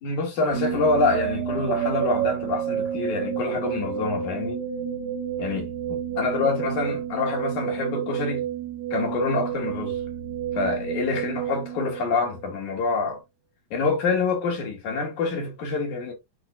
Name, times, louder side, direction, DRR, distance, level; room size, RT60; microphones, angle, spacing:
voice 1, 0.0-4.6 5.4-5.7 6.2-8.4 8.9-10.0 10.5-13.2 13.7-16.1, left 3 dB, 65° left, 3.3 m, -26 dB
sound 1, 0.5-12.6, right 9 dB, 80° right, 3.2 m, -30 dB
9.8 x 4.0 x 2.5 m
omnidirectional pair, 3.8 m